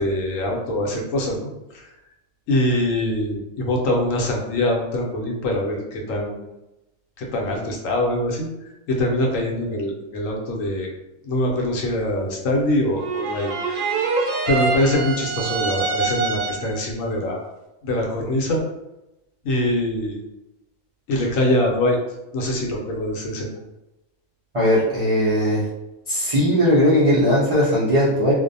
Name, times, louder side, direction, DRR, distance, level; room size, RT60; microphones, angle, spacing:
voice 1, 0.0-1.9 2.5-6.4 7.2-8.5 8.9-10.9 11.2-13.5 14.5-17.4 17.8-18.6 19.4-20.2 21.1-22.0 22.3-23.5, left 1 dB, 70° left, 0 dB, 0.9 m, -23 dB
sound 1, 13.0-16.8, right 4 dB, 90° right, 1.1 m, -25 dB
voice 2, 24.5-25.6 26.1-28.3, equal, 55° right, -10 dB, 0.4 m, -18 dB
2.5 x 2.0 x 2.6 m, 0.95 s
omnidirectional pair, 1.5 m